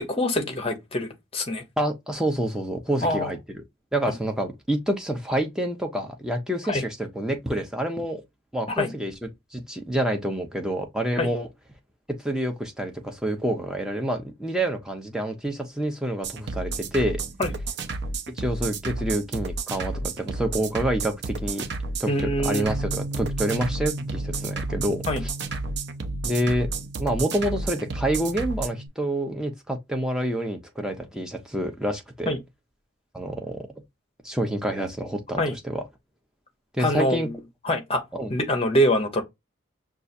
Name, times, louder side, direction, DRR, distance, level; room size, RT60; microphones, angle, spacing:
voice 1, 0.0-1.6 3.0-3.3 6.7-6.8 8.7-8.9 11.2-11.3 17.4-17.5 22.1-22.7 25.1-25.2 32.3-32.4 35.4-35.5 36.8-37.4 37.6-38.0 38.3-39.2, left 1 dB, 30° left, 0.8 m, -24 dB
voice 2, 1.8-3.4 3.9-8.2 8.5-9.1 9.5-11.5 12.2-17.2 18.4-21.6 22.0-25.0 26.2-26.7 27.0-32.3 33.1-33.6 34.2-35.8 36.7-37.3 38.1-38.3, right 1 dB, 5° right, 0.6 m, -27 dB
sound 1, 16.2-28.7, right 3 dB, 55° right, 0.5 m, -31 dB
Bass guitar, 22.6-28.9, right 1 dB, 30° right, 1.0 m, -37 dB
5.5 x 2.4 x 2.5 m
head